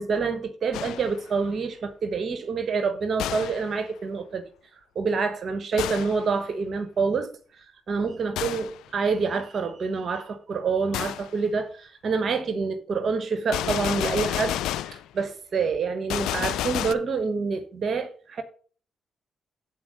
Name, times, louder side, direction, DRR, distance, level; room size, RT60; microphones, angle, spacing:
voice 1, 0.0-4.4 4.9-7.3 7.9-14.6 14.9-18.4, right 5 dB, 60° right, 1.2 m, -27 dB
Gunshot gunfire, 0.7-1.2 3.2-3.7 5.8-6.3 8.4-8.8 10.9-11.3 13.5-15.1 16.1-16.9, left 13 dB, 85° left, 0.3 m, -30 dB
7.9 x 4.5 x 6.3 m
supercardioid pair, 60°, 0 cm